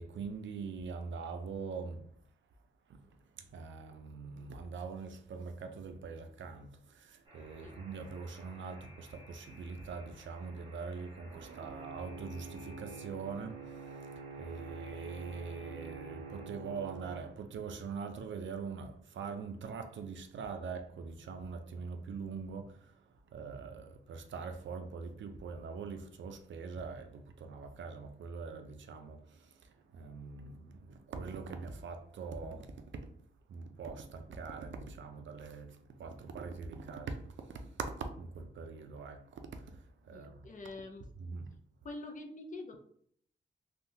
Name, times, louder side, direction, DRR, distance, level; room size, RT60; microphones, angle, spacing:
voice 1, 0.0-2.1 2.9-33.2 33.5-40.5 41.2-41.6, right 5 dB, 85° right, 0.4 m, -43 dB
Alarm, 7.2-16.5, equal, 20° right, 1.0 m, -58 dB
voice 2, 40.1-41.1 41.8-42.8, left 2 dB, 45° left, 0.4 m, -45 dB
3.4 x 2.2 x 2.7 m
wide cardioid pair, 175°, 19 cm